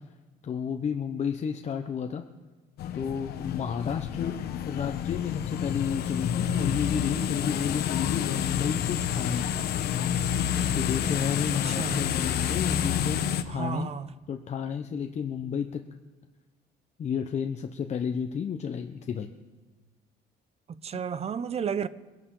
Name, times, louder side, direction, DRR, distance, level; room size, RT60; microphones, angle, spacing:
voice 1, 0.4-2.2 2.9-4.3 4.6-9.5 10.5-13.9 14.3-15.8 17.0-19.3, left 7 dB, 40° left, 0.9 m, -31 dB
sound 1, 2.8-13.4, left 9 dB, 70° left, 1.1 m, -29 dB
voice 2, 11.5-12.2 13.5-14.1 20.8-21.9, right 7 dB, 40° right, 0.7 m, -32 dB
23.5 x 11.0 x 3.9 m
cardioid pair, 110°, 17 cm